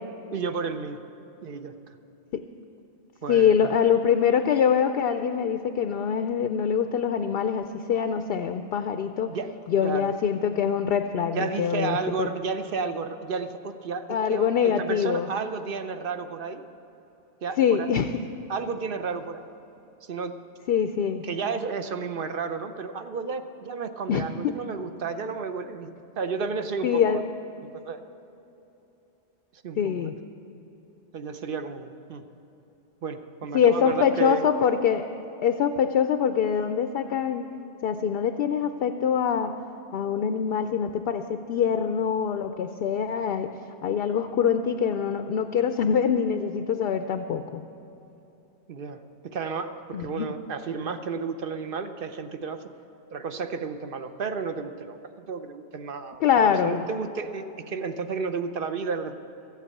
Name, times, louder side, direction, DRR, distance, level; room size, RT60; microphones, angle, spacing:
voice 1, 0.3-1.0 1.4-1.7 3.2-3.8 9.3-9.5 9.8-10.1 10.5-10.6 11.2-16.6 17.4-17.9 18.5-19.4 20.0-20.4 21.2-27.2 27.7-28.0 29.5-30.1 31.1-32.2 33.0-34.4 48.7-52.6 53.1-59.2, right 5 dB, 55° right, 9 dB, 0.8 m, -32 dB
voice 2, 3.3-9.3 9.7-12.3 14.1-15.3 17.6-18.1 20.7-21.2 24.1-24.5 26.8-27.2 29.8-30.1 33.5-35.0 35.4-37.5 37.8-39.5 39.9-43.5 43.8-47.6 49.9-50.3 56.2-56.8, left 7 dB, 60° left, 8 dB, 0.7 m, -24 dB
14.5 x 8.2 x 8.4 m, 3.0 s
omnidirectional pair, 1.3 m